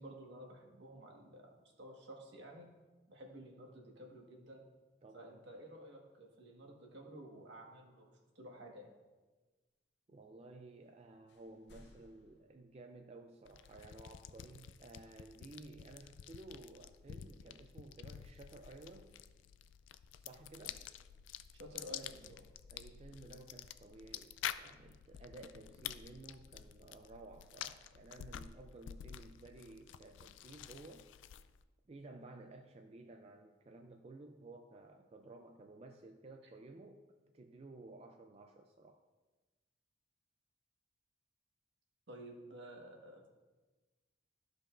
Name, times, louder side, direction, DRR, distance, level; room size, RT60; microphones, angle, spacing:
voice 1, 0.0-2.7 3.1-4.6 5.1-8.9 21.5-22.5 42.1-43.3, right 1 dB, 70° right, 0 dB, 1.4 m, -52 dB
voice 2, 5.0-5.5 10.1-19.1 20.2-20.8 22.7-31.1 31.9-37.0 37.3-39.0, right 2 dB, 35° right, 4 dB, 0.3 m, -55 dB
sound 1, 10.8-11.0 11.3-13.3, left 1 dB, 65° left, 0.8 m, -64 dB
sound 2, 13.4-31.6, left 10 dB, 80° left, 0.3 m, -49 dB
14.0 x 5.2 x 2.5 m, 1.3 s
head